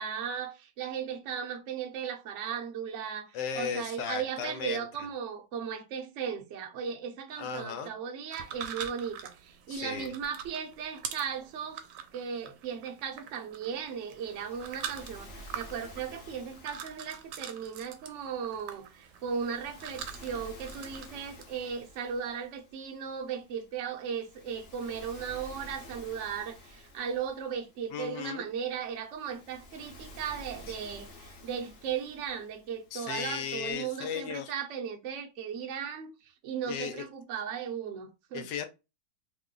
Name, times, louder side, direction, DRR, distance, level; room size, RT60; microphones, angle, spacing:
voice 1, 0.0-11.8 12.1-36.1 36.4-38.4, right 7 dB, 60° right, 0.8 m, -37 dB
voice 2, 3.3-4.8 7.4-7.9 9.7-10.1 27.9-28.5 30.7-30.8 32.9-34.5 36.7-37.1 38.3-38.7, left 7 dB, 85° left, 1.3 m, -36 dB
sound 1, 8.3-21.4, right 8 dB, 75° right, 1.2 m, -44 dB
Waves surf, 13.7-33.7, left 1 dB, 50° left, 0.8 m, -51 dB
3.1 x 2.1 x 3.7 m
omnidirectional pair, 1.9 m